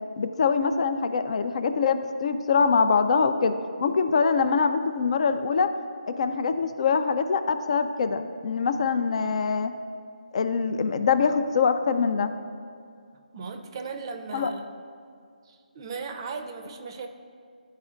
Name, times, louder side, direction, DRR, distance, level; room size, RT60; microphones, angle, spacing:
voice 1, 0.2-3.5 3.8-5.7 6.1-9.7 10.3-12.3 14.3-14.5, left 5 dB, 45° left, 9 dB, 0.3 m, -24 dB
voice 2, 13.3-14.6 15.5-17.1, right 4 dB, 35° right, 5 dB, 0.5 m, -37 dB
12.0 x 4.3 x 2.4 m, 2.2 s
figure-of-eight pair, 155°, 5 cm